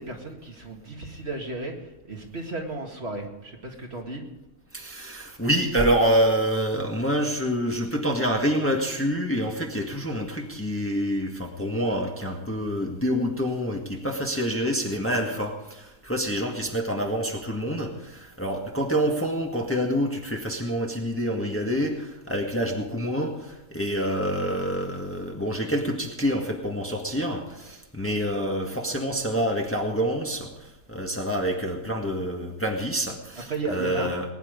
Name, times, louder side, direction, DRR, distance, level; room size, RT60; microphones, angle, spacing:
voice 1, 0.0-4.3 33.5-34.1, right 2 dB, 45° right, 1 dB, 2.2 m, -34 dB
voice 2, 4.7-34.2, equal, 10° left, 1 dB, 1.6 m, -27 dB
20.0 x 10.5 x 5.2 m, 0.98 s
omnidirectional pair, 1.5 m